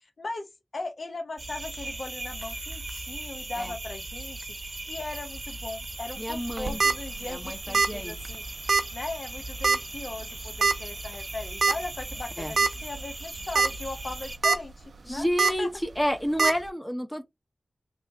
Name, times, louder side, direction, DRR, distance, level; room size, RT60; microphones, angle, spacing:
voice 1, 0.2-0.5 0.7-15.3 15.6-15.7, left 2 dB, 65° left, 0.8 m, -38 dB
sound 1, 1.4-14.4, right 2 dB, 45° right, 0.8 m, -38 dB
voice 2, 6.2-6.8 7.2-8.2 12.4-12.6 15.0-17.2, equal, 10° left, 0.8 m, -30 dB
sound 2, 6.5-6.9 7.7-8.0 8.2-8.3 8.7-8.8 9.6-9.9 10.6-10.7 11.6-11.7 12.2-12.3 12.6-12.7 13.4-13.7 14.1-14.6 15.4-15.5 16.4-16.5, right 4 dB, 80° right, 0.4 m, -22 dB
3.3 x 2.7 x 2.8 m
cardioid pair, 50°, 0 cm